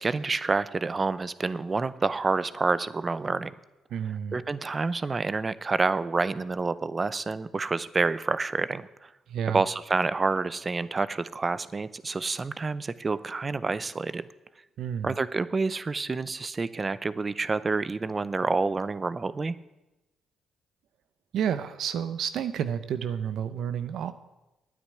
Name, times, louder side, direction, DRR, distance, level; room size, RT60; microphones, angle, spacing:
voice 1, 0.0-3.5 4.1-9.1 9.5-14.3 15.0-19.5, right 3 dB, 30° right, 16 dB, 0.6 m, -28 dB
voice 2, 3.9-4.4 9.3-9.6 14.8-15.1 21.3-24.1, right 8 dB, 75° right, 12 dB, 0.7 m, -30 dB
9.7 x 8.7 x 9.7 m, 1.0 s
cardioid pair, 90°, 0 cm